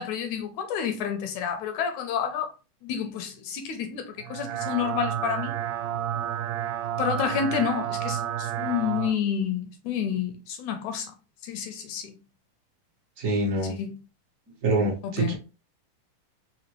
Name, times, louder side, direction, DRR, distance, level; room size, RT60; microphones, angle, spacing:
voice 1, 0.0-2.5 2.8-5.5 7.0-11.1 11.4-12.2 13.7-13.9 15.0-15.3, left 8 dB, 80° left, 1.8 m, -29 dB
sound 1, 4.2-9.1, right 11 dB, 85° right, 2.0 m, -30 dB
voice 2, 13.2-13.8 14.6-15.3, right 2 dB, 55° right, 0.8 m, -25 dB
5.0 x 2.8 x 3.0 m
omnidirectional pair, 3.7 m